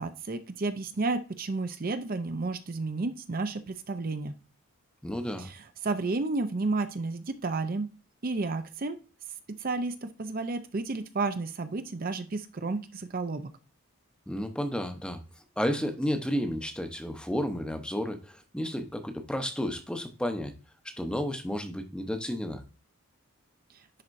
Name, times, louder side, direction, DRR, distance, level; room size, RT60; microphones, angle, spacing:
voice 1, 0.0-4.3 5.4-7.9 8.2-9.0 9.6-13.5, right 3 dB, 40° right, 9 dB, 0.5 m, -32 dB
voice 2, 5.0-5.5 14.3-15.2 15.6-20.5 20.8-22.6, equal, 5° left, 6 dB, 0.8 m, -32 dB
10.5 x 4.3 x 2.6 m, 0.33 s
head